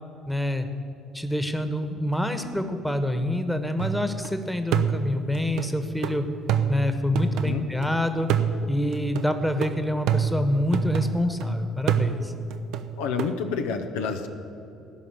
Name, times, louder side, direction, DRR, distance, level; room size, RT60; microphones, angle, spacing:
voice 1, 0.3-0.7 1.1-6.2 6.7-8.3 8.7-12.3, left 1 dB, 5° left, 8 dB, 1.4 m, -26 dB
sound 1, 3.8-4.3 4.7-7.9 8.3-11.5 11.9-13.3, right 7 dB, 60° right, 0.7 m, -27 dB
voice 2, 7.1-7.7 13.0-14.3, left 6 dB, 70° left, 5 dB, 0.9 m, -29 dB
17.5 x 5.9 x 9.9 m, 2.8 s
figure-of-eight pair, 50°, 0 cm